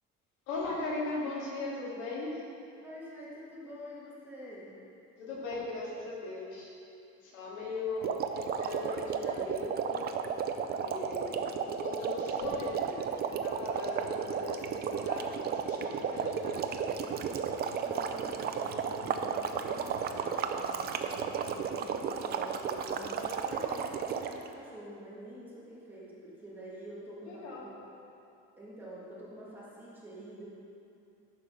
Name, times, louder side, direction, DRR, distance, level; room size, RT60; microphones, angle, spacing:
voice 1, 0.5-2.4 5.2-6.7 7.2-10.0 10.8-12.9 13.4-17.2 20.9-21.0 27.3-27.6, left 3 dB, 85° left, -5 dB, 2.4 m, -39 dB
voice 2, 2.8-4.8 17.8-28.0 28.6-30.5, equal, 5° right, -8 dB, 1.7 m, -47 dB
sound 1, 8.0-24.5, right 7 dB, 35° right, 0.4 m, -33 dB
sound 2, 12.8-21.6, right 7 dB, 75° right, 0.8 m, -51 dB
10.5 x 5.0 x 6.2 m, 2.6 s
cardioid pair, 180°, 29 cm